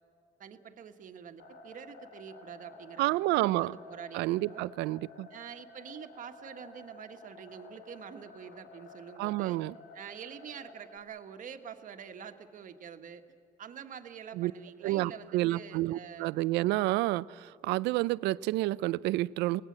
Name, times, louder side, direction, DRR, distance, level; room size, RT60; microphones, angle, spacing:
voice 1, 0.4-4.7 5.3-9.6 9.9-13.2 13.6-16.3, right 7 dB, 50° right, 1.5 m, -46 dB
sound 1, 1.4-11.0, left 2 dB, 85° left, 2.2 m, -52 dB
voice 2, 3.0-3.8 4.1-5.3 9.2-9.7 14.4-14.5 14.8-19.6, right 18 dB, 90° right, 0.5 m, -29 dB
27.5 x 19.5 x 7.5 m
cardioid pair, 110°, 17 cm